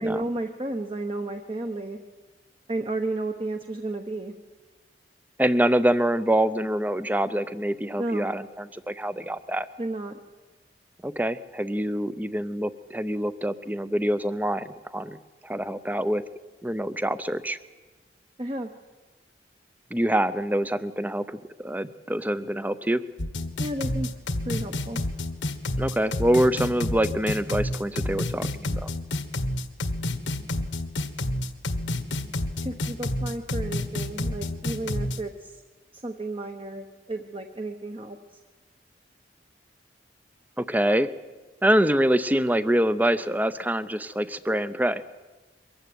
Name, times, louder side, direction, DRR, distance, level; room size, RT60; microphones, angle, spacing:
voice 1, 0.0-2.0 2.7-4.3 8.0-8.3 9.8-10.2 18.4-18.7 23.6-24.1 24.4-25.0 32.6-35.6 35.9-38.2, right 2 dB, 30° right, 5 dB, 1.0 m, -32 dB
voice 2, 5.4-9.7 11.0-15.2 15.4-16.2 16.6-17.6 19.9-23.0 25.8-28.9 40.6-41.1 41.6-45.0, right 1 dB, 10° right, 14 dB, 0.6 m, -25 dB
sound 1, 23.2-35.2, left 1 dB, 85° left, 1.5 m, -29 dB
23.0 x 15.0 x 9.3 m, 1.3 s
head